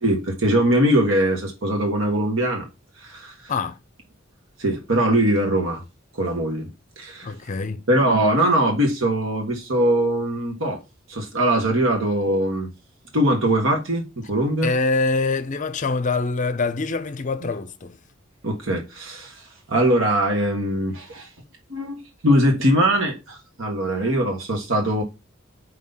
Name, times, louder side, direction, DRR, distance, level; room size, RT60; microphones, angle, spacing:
voice 1, 0.0-2.7 3.0-3.5 4.6-5.8 6.1-6.7 7.0-7.3 7.9-10.8 11.1-12.7 13.1-14.7 17.4-17.5 18.4-19.4 19.7-21.3 21.7-25.0, right 1 dB, 80° right, 1.5 m, -21 dB
voice 2, 7.2-7.8 14.6-18.0, left 3 dB, 40° left, 0.6 m, -24 dB
5.3 x 4.0 x 5.3 m
head